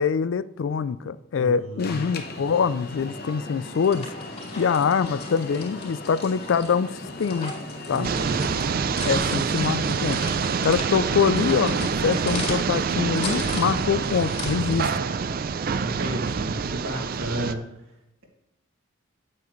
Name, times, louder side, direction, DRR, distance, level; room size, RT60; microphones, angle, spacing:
voice 1, 0.0-4.1 4.6-7.5 7.9-8.1 9.1-10.2 10.6-14.9, left 6 dB, 65° left, 0.3 m, -24 dB
voice 2, 1.3-2.0 7.9-8.4 15.7-17.6, right 1 dB, 80° right, 2.1 m, -32 dB
Alarm, 1.8-9.1, left 2 dB, 50° left, 1.0 m, -38 dB
sound 1, 3.7-15.0, left 2 dB, 35° left, 3.7 m, -38 dB
sound 2, 8.0-17.5, right 5 dB, 45° right, 0.4 m, -26 dB
9.4 x 8.4 x 3.1 m
head